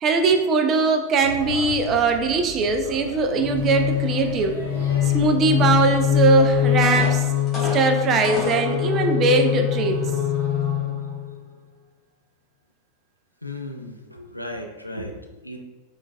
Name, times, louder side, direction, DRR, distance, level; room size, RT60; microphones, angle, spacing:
voice 1, 0.0-4.6 5.1-7.2 7.7-10.0, right 4 dB, 30° right, 5 dB, 0.3 m, -20 dB
Male speech man speaking / Child speech kid speaking / Chatter, 1.2-7.1, left 2 dB, 70° left, 0.7 m, -36 dB
sound 1, 3.4-11.3, left 11 dB, 10° right, 1.3 m, -23 dB
sound 2, 6.3-6.4 6.8-8.7 9.3-9.4 10.0-10.2, left 1 dB, 20° left, 1.1 m, -31 dB
voice 2, 13.4-15.6, left 1 dB, 90° left, 2 dB, 0.3 m, -35 dB
3.7 x 2.3 x 2.2 m, 1.1 s
figure-of-eight pair, 90°, 0 cm